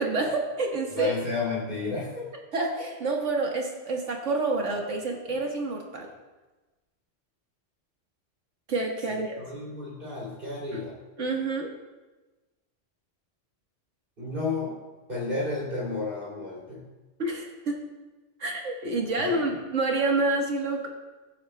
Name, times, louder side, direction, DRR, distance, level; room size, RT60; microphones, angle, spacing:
voice 1, 0.0-1.1 2.5-6.1 8.7-9.4 10.7-10.8 11.2-11.7 17.2-17.8 18.4-20.9, right 3 dB, 80° right, 0 dB, 1.7 m, -28 dB
voice 2, 0.9-2.2 9.4-10.9 14.2-14.8 15.1-16.8 19.2-19.4, left 3 dB, 45° right, -6 dB, 3.1 m, -32 dB
22.0 x 8.8 x 2.2 m, 1.2 s
omnidirectional pair, 1.2 m